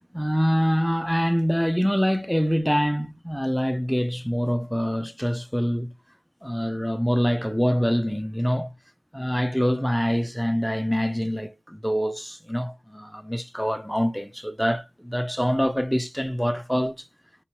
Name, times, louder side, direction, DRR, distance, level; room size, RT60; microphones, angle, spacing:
voice 1, 0.1-5.9 6.4-8.7 9.1-17.1, equal, ahead, 0.3 m, -25 dB
2.8 x 2.1 x 3.0 m
cardioid pair, 55°, 0 cm